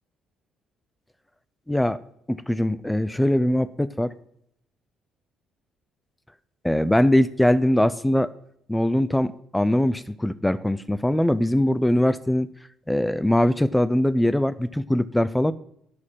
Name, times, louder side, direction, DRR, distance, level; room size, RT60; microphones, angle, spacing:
voice 1, 1.7-2.0 2.3-4.1 6.6-8.3 8.7-12.5 12.9-15.5, left 1 dB, 5° left, 16 dB, 0.5 m, -21 dB
11.0 x 4.3 x 7.3 m, 0.72 s
supercardioid pair, 70°, 0 cm